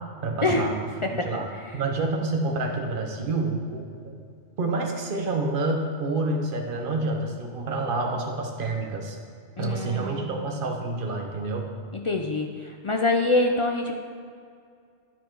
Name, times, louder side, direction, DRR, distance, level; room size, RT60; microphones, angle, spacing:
voice 1, 0.2-0.7 1.1-1.5 1.7-4.1 4.6-9.2 9.6-11.7, right 3 dB, 50° right, 1 dB, 1.1 m, -28 dB
voice 2, 9.6-10.3 12.1-12.5 12.8-13.9, left 2 dB, 45° left, 3 dB, 0.4 m, -24 dB
12.5 x 4.5 x 4.6 m, 2.3 s
omnidirectional pair, 1.2 m